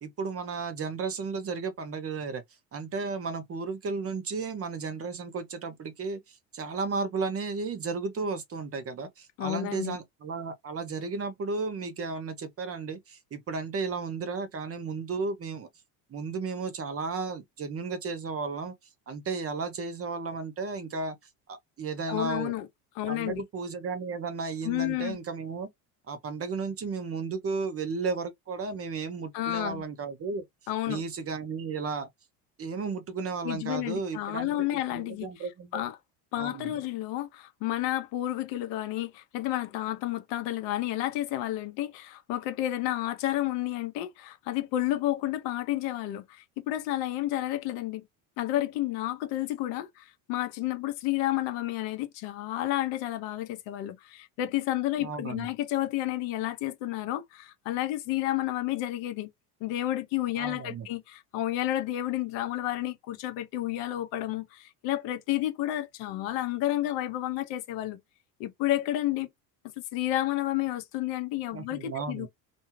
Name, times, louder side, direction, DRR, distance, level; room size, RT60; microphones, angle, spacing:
voice 1, 0.0-2.4 2.7-15.7 16.1-18.7 19.1-21.2 21.5-22.5 23.1-25.7 26.1-30.4 30.9-32.1 32.6-35.8 36.4-36.8 55.0-55.5 60.4-60.9 71.5-72.3, right 4 dB, 30° right, 0.8 m, -34 dB
voice 2, 9.4-10.0 22.1-22.7 23.0-23.4 24.6-25.2 29.3-29.8 30.7-31.0 33.4-35.3 35.7-36.0 36.3-48.0 48.4-59.3 59.6-68.0 68.4-69.3 69.8-72.3, left 14 dB, 65° left, 0.9 m, -31 dB
2.6 x 2.3 x 3.1 m
hypercardioid pair, 85°, 48 cm